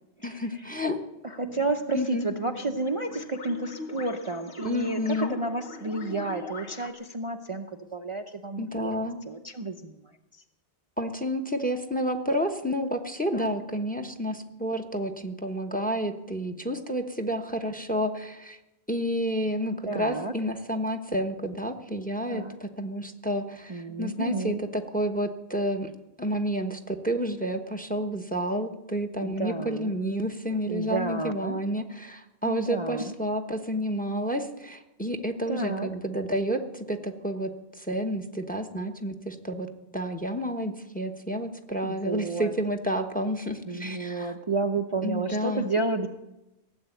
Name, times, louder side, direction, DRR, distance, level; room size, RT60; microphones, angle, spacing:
voice 1, 0.2-1.0 1.9-2.2 4.6-5.4 8.6-9.2 11.0-18.6 18.9-25.9 26.2-44.3 45.0-45.7, equal, 10° left, 7 dB, 1.0 m, -30 dB
voice 2, 1.2-5.0 5.3-8.9 9.3-9.9 10.3-10.4 13.3-13.5 19.9-20.3 22.3-22.6 23.7-24.6 29.2-30.0 30.7-31.6 32.4-33.1 35.5-35.9 41.8-42.6 43.7-46.1, right 3 dB, 30° right, 4 dB, 0.8 m, -31 dB
sound 1, 1.4-6.9, left 3 dB, 65° left, 1.5 m, -42 dB
17.5 x 8.0 x 9.2 m, 0.97 s
omnidirectional pair, 1.1 m